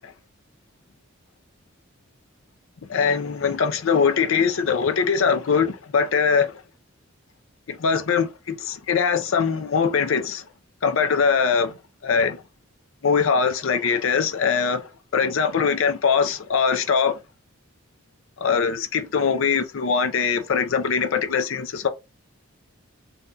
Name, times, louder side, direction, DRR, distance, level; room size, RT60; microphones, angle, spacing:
voice 1, 2.9-6.6 7.7-10.4 10.8-11.7 12.0-12.4 13.0-14.8 15.1-17.2 18.4-21.9, left 6 dB, 65° left, 0.5 m, -22 dB
2.7 x 2.2 x 3.6 m
head